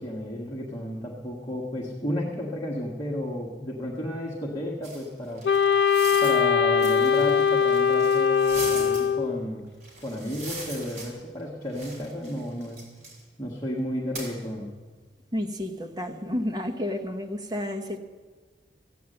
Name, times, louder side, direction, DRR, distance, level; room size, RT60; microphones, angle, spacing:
voice 1, 0.0-5.4 6.2-9.7 10.0-12.9 13.4-14.7, equal, 25° left, -4 dB, 1.6 m, -32 dB
sound 1, 4.8-6.4 6.8-9.0 9.8-11.4 11.7-13.2 14.1-14.3, right 2 dB, 40° right, 4.6 m, -40 dB
Wind instrument woodwind instrument, 5.4-9.4, left 6 dB, 75° left, 0.5 m, -21 dB
voice 2, 15.3-18.0, left 1 dB, 20° right, 4 dB, 1.1 m, -31 dB
15.0 x 9.2 x 7.8 m, 1.4 s
head